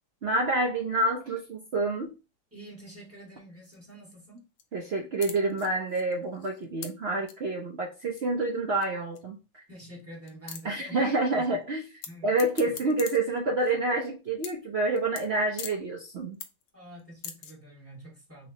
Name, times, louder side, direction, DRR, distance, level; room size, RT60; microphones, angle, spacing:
voice 1, 0.2-2.1 4.7-9.6 10.6-11.9 12.2-16.4, right 2 dB, 65° right, 1 dB, 0.6 m, -28 dB
voice 2, 2.5-4.4 9.7-11.6 12.1-12.3 12.6-12.7 16.7-18.5, right 1 dB, 10° right, -4 dB, 1.8 m, -46 dB
sound 1, 3.7-4.1 4.4-4.6 4.9-5.0 5.2-6.9 7.3-7.4 8.2-8.3 8.8-8.9 9.2-9.3 9.4-9.5 10.0-10.1 10.3-10.6 12.0-12.1 12.4-14.1 14.4-14.7 15.0-15.3 15.6-15.7 16.1-16.7 17.0-17.5, left 8 dB, 90° left, 1.4 m, -41 dB
4.5 x 3.1 x 2.8 m, 0.29 s
omnidirectional pair, 2.0 m